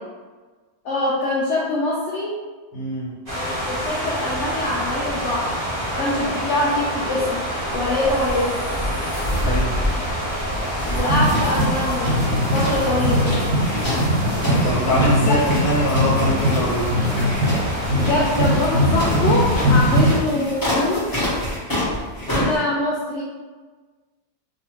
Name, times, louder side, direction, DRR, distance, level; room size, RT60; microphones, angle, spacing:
voice 1, 0.8-2.4 3.3-5.6 6.0-7.4 7.7-8.6 10.9-12.2 12.5-13.3 15.3-15.4 17.9-21.1 22.3-23.2, left 2 dB, 85° left, -5 dB, 0.6 m, -24 dB
voice 2, 2.7-3.1 6.2-6.3 9.4-9.7 14.4-16.9 22.2-22.5, equal, 65° left, -8 dB, 1.3 m, -23 dB
sound 1, 3.3-20.1, equal, 25° right, 0.9 m, -27 dB
sound 2, 10.8-22.6, left 1 dB, 20° left, 0.6 m, -29 dB
sound 3, 11.1-20.3, equal, 75° right, 1.2 m, -21 dB
2.7 x 2.5 x 3.0 m, 1.4 s
omnidirectional pair, 1.8 m